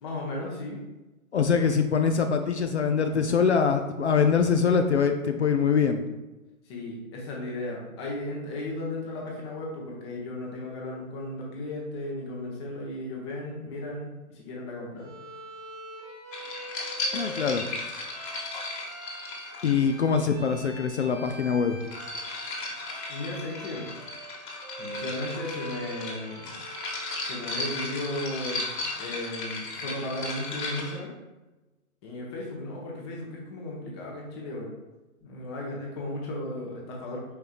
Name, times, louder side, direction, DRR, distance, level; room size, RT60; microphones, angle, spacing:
voice 1, 0.0-0.8 6.6-15.1 23.1-23.9 24.8-26.5 27.2-28.6 29.0-31.1 32.0-34.7 35.2-37.2, left 1 dB, 20° left, -2 dB, 0.8 m, -35 dB
voice 2, 1.3-6.0 17.1-17.7 19.6-21.8, left 6 dB, 55° left, 6 dB, 0.4 m, -23 dB
Bowed string instrument, 15.0-27.5, right 1 dB, 10° right, 1.1 m, -43 dB
sound 1, 16.3-20.2 21.5-31.0, left 2 dB, 35° left, 1.2 m, -36 dB
5.0 x 4.4 x 2.4 m, 1.1 s
figure-of-eight pair, 130°, 43 cm